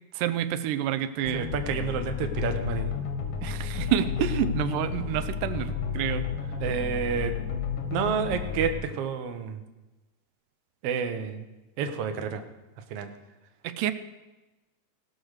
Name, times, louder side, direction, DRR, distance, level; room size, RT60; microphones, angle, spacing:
voice 1, 0.1-1.5 3.4-6.3 13.6-13.9, right 11 dB, 90° right, 11 dB, 2.3 m, -28 dB
sound 1, 1.2-8.7, left 7 dB, 85° left, 3.2 m, -32 dB
voice 2, 1.3-2.9 6.6-7.3 7.9-9.6 10.8-11.5 11.8-12.4 12.9-13.1, right 6 dB, 65° right, 7 dB, 1.7 m, -29 dB
18.0 x 6.1 x 6.5 m, 1.1 s
omnidirectional pair, 3.7 m